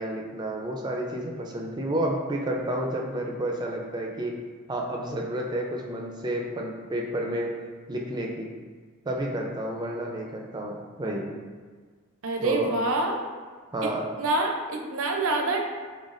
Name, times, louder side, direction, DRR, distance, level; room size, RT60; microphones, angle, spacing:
voice 1, 0.0-4.4 4.7-7.5 7.9-8.5 9.1-11.3 12.4-12.7 13.7-14.1, right 1 dB, 20° right, 0 dB, 0.4 m, -30 dB
voice 2, 12.2-13.2 13.8-13.9 14.2-15.6, right 2 dB, 75° right, 2 dB, 0.5 m, -26 dB
4.0 x 3.8 x 2.5 m, 1.5 s
head